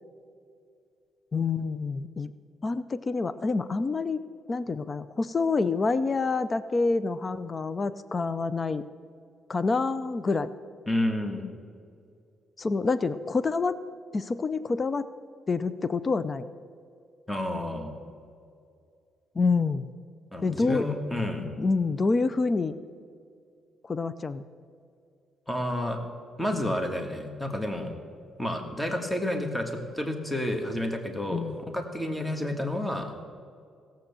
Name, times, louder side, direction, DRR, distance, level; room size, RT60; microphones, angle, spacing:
voice 1, 1.3-2.3 2.6-4.2 4.5-8.8 9.5-10.5 12.6-13.8 14.1-15.1 15.5-16.5 19.4-19.9 20.4-20.9 21.6-22.7 23.8-24.4 31.3-31.6, left 4 dB, 35° left, 14 dB, 0.5 m, -27 dB
voice 2, 10.9-11.5 17.3-17.9 20.3-21.5 25.5-26.0 26.4-27.9 28.4-33.1, left 1 dB, 10° left, 4 dB, 1.6 m, -30 dB
16.0 x 7.7 x 7.0 m, 2.4 s
cardioid pair, 90°, 0 cm